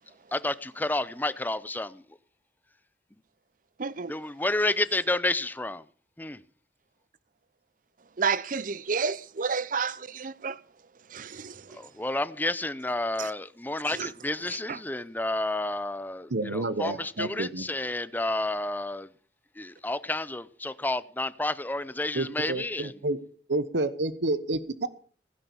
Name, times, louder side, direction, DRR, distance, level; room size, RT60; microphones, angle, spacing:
voice 1, 0.3-2.0 4.1-5.8 6.2-6.4 11.7-19.1 19.6-22.9, left 2 dB, 10° left, 0.6 m, -30 dB
voice 2, 3.8-4.1 8.2-10.6 11.1-11.8 13.2-13.3 13.9-14.1 14.5-14.8, right 5 dB, 50° right, 0.7 m, -31 dB
voice 3, 16.3-17.6 22.1-23.2 23.5-24.9, right 2 dB, 80° right, 1.1 m, -29 dB
16.0 x 10.5 x 6.9 m
head